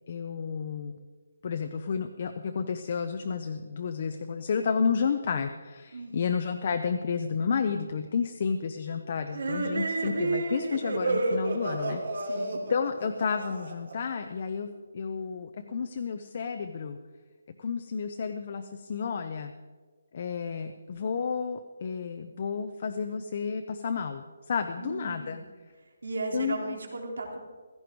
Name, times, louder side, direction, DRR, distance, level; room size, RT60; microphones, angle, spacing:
voice 1, 0.1-1.0 1.4-12.0 12.7-14.7 14.9-17.0 17.6-19.5 20.1-25.4 26.3-26.8, left 6 dB, 30° left, 7 dB, 0.6 m, -31 dB
voice 2, 5.9-6.2 12.2-12.6 24.8-25.5 25.8-27.4, right 3 dB, 85° right, 1 dB, 3.4 m, -36 dB
sound 1, 9.3-13.9, right 3 dB, 65° right, 2.8 m, -30 dB
16.0 x 14.5 x 4.6 m, 1.4 s
hypercardioid pair, 180°, 0 cm